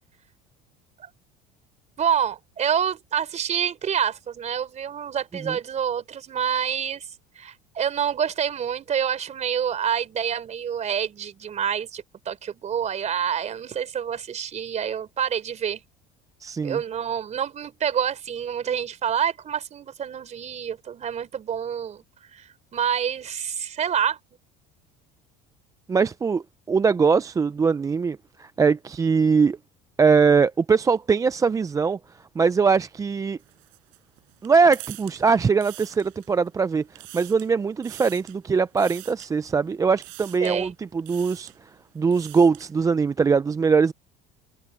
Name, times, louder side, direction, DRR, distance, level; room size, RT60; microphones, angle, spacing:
voice 1, 2.0-7.1 7.4-15.8 16.6-22.0 22.3-24.2 40.4-40.7, right 8 dB, 35° right, 4.1 m, -27 dB
voice 2, 16.4-16.8 25.9-29.6 30.0-32.0 32.4-33.4 34.4-36.8 37.1-41.5 42.0-43.9, right 5 dB, 15° right, 0.4 m, -21 dB
sound 1, 33.4-36.5 36.8-37.5 37.8-38.4 38.8-39.3 40.0-40.6 41.0-41.6 42.0-42.7, right 27 dB, 75° right, 7.7 m, -44 dB
cardioid pair, 120°, 20 cm